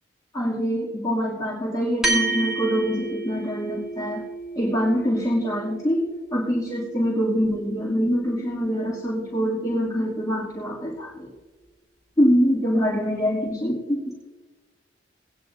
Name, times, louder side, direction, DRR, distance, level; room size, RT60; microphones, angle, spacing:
voice 1, 0.3-4.2 4.6-11.3 12.2-14.1, equal, 20° left, -7 dB, 2.5 m, -24 dB
sound 1, 2.0-10.7, right 3 dB, 5° right, 2.7 m, -33 dB
19.0 x 9.9 x 2.6 m, 1.2 s
head